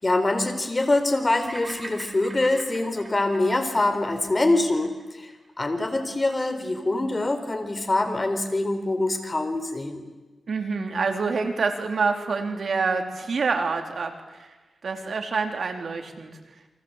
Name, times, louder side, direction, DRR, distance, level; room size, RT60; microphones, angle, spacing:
voice 1, 0.0-5.3 5.6-10.0, left 2 dB, 30° left, 7 dB, 4.2 m, -24 dB
Bird vocalization bird call bird song, 1.5-5.8, right 2 dB, 35° right, 5.3 m, -43 dB
voice 2, 10.5-14.5 14.8-16.3, right 4 dB, 70° right, 4 dB, 3.6 m, -27 dB
29.5 x 24.5 x 8.2 m, 1.2 s
wide cardioid pair, 90°, 0 cm